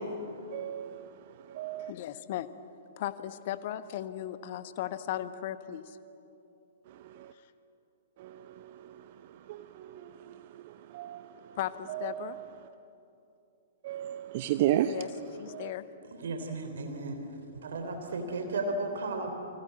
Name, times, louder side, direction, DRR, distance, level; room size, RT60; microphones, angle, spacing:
voice 1, 0.5-0.9 1.5-1.9 8.2-8.3 9.5-9.6 10.9-11.3 11.9-12.3 13.8-15.0 15.5-15.7, right 12 dB, 40° right, 10 dB, 0.8 m, -31 dB
voice 2, 1.9-2.5 3.0-6.0 11.5-12.4 14.8-15.1 15.4-15.8, left 12 dB, 45° left, 13 dB, 1.2 m, -36 dB
voice 3, 16.0-17.2 17.5-19.3, right 2 dB, 55° right, 5 dB, 3.4 m, -34 dB
29.0 x 25.0 x 8.2 m, 2.9 s
figure-of-eight pair, 110°, 0 cm